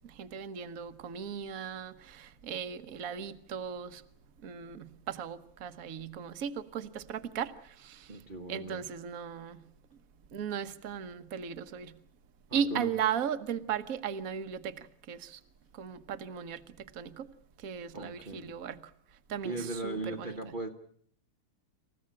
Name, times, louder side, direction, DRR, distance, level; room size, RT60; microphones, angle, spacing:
voice 1, 0.0-4.0 4.4-8.1 8.5-9.6 10.3-11.9 12.5-15.4 15.7-17.3 17.6-18.8 19.3-20.3, right 8 dB, 50° right, 1.4 m, -37 dB
voice 2, 8.1-8.9 12.5-12.9 17.9-18.5 19.4-20.7, right 2 dB, 30° right, 1.3 m, -38 dB
28.0 x 15.0 x 9.9 m
omnidirectional pair, 2.2 m